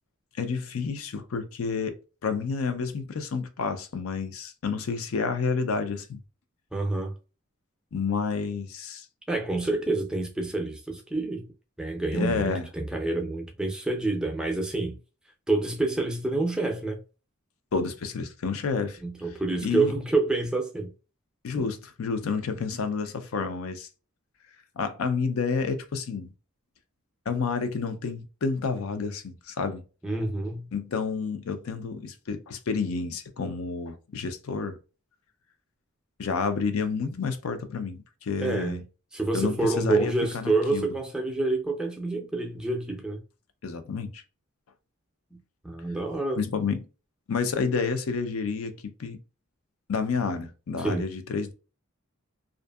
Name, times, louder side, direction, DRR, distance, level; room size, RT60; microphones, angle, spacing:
voice 1, 0.4-1.9 2.2-6.2 7.9-9.1 12.1-12.7 17.7-19.0 19.6-19.9 21.4-23.9 24.8-26.3 27.3-29.8 30.7-34.8 36.2-38.8 39.3-40.9 43.6-44.2 46.4-46.8 47.3-49.2 49.9-51.5, left 5 dB, 85° left, 0.5 m, -30 dB
voice 2, 6.7-7.1 9.3-11.5 11.8-15.0 15.5-17.0 19.0-20.9 21.5-21.7 30.0-30.7 38.4-38.8 39.1-43.2 45.3-45.4 45.6-46.4 50.8-51.0, right 2 dB, 5° right, 0.4 m, -28 dB
2.6 x 2.5 x 2.3 m
head